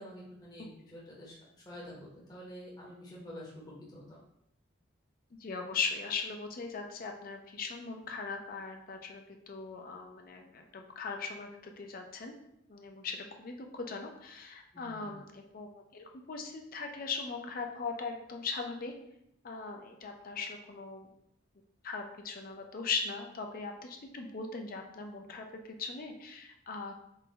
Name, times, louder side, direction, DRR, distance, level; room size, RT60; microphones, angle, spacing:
voice 1, 0.0-1.4 1.6-4.2 14.7-15.2, equal, 20° left, -5 dB, 0.8 m, -48 dB
voice 2, 5.4-12.3 12.7-18.9 19.4-21.1 21.8-26.9, left 4 dB, 45° left, 4 dB, 0.5 m, -39 dB
3.8 x 2.2 x 3.9 m, 0.78 s
head